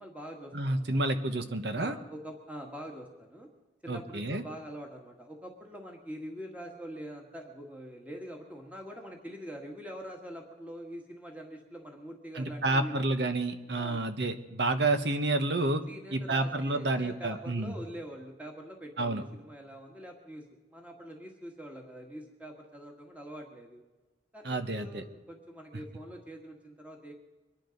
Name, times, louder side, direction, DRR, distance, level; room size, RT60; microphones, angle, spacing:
voice 1, 0.0-1.0 1.7-3.5 3.8-13.1 13.7-14.0 14.3-14.4 15.9-23.8 24.3-27.1, equal, 10° right, 1 dB, 1.7 m, -44 dB
voice 2, 0.5-1.9 3.9-4.4 12.3-15.8 16.1-17.7 19.0-19.2 24.4-25.0, right 2 dB, 70° right, 8 dB, 1.2 m, -29 dB
24.0 x 10.5 x 5.3 m, 1.2 s
head